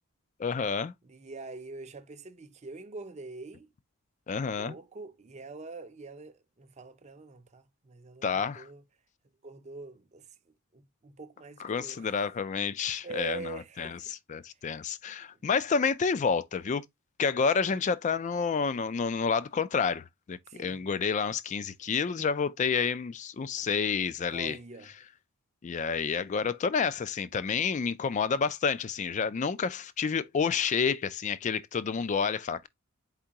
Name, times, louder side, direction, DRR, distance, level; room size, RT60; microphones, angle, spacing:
voice 1, 0.4-0.9 4.3-4.8 8.2-8.7 11.6-16.8 17.2-24.6 25.6-32.7, left 5 dB, 35° left, 0.3 m, -29 dB
voice 2, 1.0-3.7 4.4-8.8 9.4-10.3 10.7-12.2 13.0-14.0 14.7-14.9 20.5-20.8 23.6-23.7 24.3-24.9, right 3 dB, 30° right, 0.5 m, -44 dB
4.4 x 3.6 x 2.8 m
head